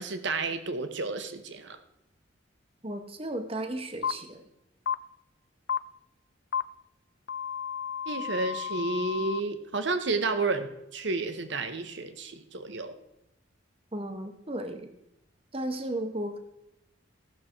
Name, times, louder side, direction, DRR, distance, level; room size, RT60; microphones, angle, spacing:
voice 1, 0.0-1.8 8.1-13.0, right 3 dB, 60° right, 9 dB, 1.0 m, -31 dB
voice 2, 2.8-4.4 13.9-14.9 15.5-16.4, right 1 dB, 30° right, 7 dB, 0.9 m, -34 dB
sound 1, 4.0-4.1 4.9-5.0 5.7-5.8 6.5-6.6 7.3-9.4, left 8 dB, 55° left, 0.3 m, -32 dB
15.0 x 6.3 x 4.5 m, 0.86 s
head